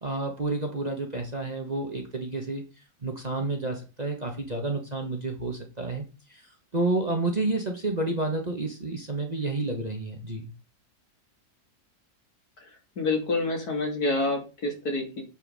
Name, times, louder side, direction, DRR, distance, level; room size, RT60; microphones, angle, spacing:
voice 1, 0.0-2.6 3.0-6.4 6.7-10.5, right 2 dB, 25° right, 2 dB, 1.3 m, -30 dB
voice 2, 13.0-15.2, left 2 dB, 70° left, 1 dB, 3.1 m, -27 dB
8.7 x 5.5 x 4.1 m, 0.31 s
omnidirectional pair, 1.7 m